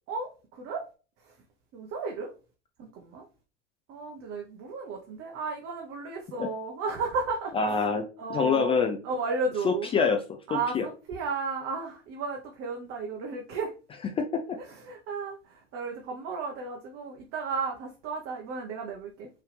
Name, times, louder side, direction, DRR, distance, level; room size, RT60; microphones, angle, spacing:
voice 1, 0.1-0.8 1.2-1.3 1.7-2.3 2.8-3.2 3.9-7.7 8.2-8.7 9.0-9.9 10.5-13.7 14.6-19.3, right 4 dB, 35° right, 1.0 m, -34 dB
voice 2, 7.5-8.0 8.3-9.0 9.6-10.9 14.1-14.6, left 5 dB, 15° left, 0.4 m, -26 dB
4.5 x 3.2 x 3.3 m
hypercardioid pair, 95°, 36 cm